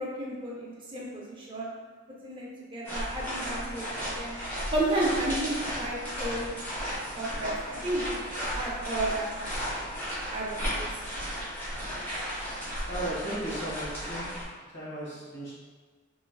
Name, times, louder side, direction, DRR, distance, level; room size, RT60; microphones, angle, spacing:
voice 1, 0.0-1.7 2.2-4.4 4.7-6.5 6.9-8.2 8.5-9.8 10.3-10.9, right 1 dB, 25° right, -4 dB, 0.5 m, -32 dB
sound 1, 2.8-14.5, equal, 10° left, 1.4 m, -34 dB
voice 2, 12.9-14.3 14.7-15.5, right 1 dB, 65° left, -8 dB, 1.5 m, -35 dB
4.5 x 3.1 x 2.3 m, 1.4 s
head